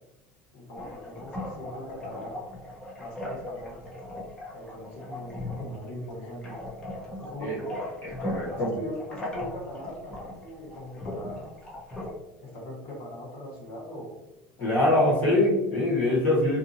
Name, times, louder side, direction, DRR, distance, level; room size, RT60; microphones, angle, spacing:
voice 1, 0.5-2.4 3.0-3.8 4.5-6.6 7.2-7.7 8.5-11.5 12.4-14.2 14.6-14.8, left 1 dB, 55° left, -3 dB, 1.3 m, -40 dB
sound 1, 0.7-12.1, left 1 dB, 15° left, 0.7 m, -38 dB
voice 2, 8.0-8.7 14.6-16.6, left 1 dB, 35° left, -6 dB, 1.3 m, -24 dB
2.6 x 2.6 x 2.7 m, 1.0 s
cardioid pair, 160°, 6 cm